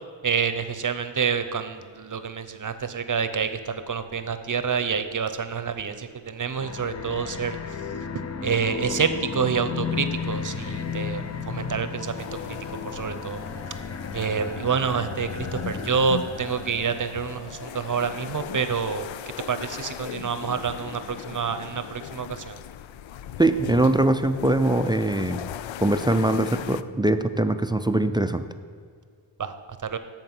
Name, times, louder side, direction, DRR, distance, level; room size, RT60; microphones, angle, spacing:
voice 1, 0.2-7.6 8.4-12.3 12.8-13.4 14.1-19.1 19.4-22.6 29.4-29.5 29.8-30.0, right 6 dB, 40° right, 10 dB, 0.8 m, -28 dB
sound 1, 6.6-17.2, left 5 dB, 35° left, 0.7 m, -34 dB
sound 2, 9.3-18.4, equal, 55° left, 2.1 m, -48 dB
sound 3, 12.2-26.8, left 10 dB, 70° left, 0.5 m, -38 dB
voice 2, 23.4-25.4 25.8-28.4, right 1 dB, 10° right, 9 dB, 0.4 m, -22 dB
13.5 x 4.5 x 6.0 m, 2.1 s
cardioid pair, 70°, 49 cm